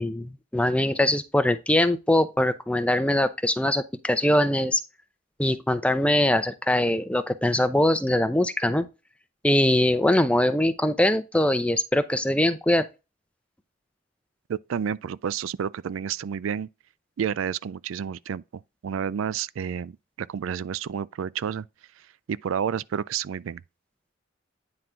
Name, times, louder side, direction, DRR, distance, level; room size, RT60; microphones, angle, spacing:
voice 1, 0.0-4.8 5.4-8.9 9.4-12.9, left 1 dB, 5° left, 0.6 m, -22 dB
voice 2, 14.5-16.7 17.2-18.4 18.8-19.9 20.2-21.7 22.3-23.6, right 7 dB, 85° right, 0.4 m, -30 dB
9.5 x 3.8 x 4.4 m
head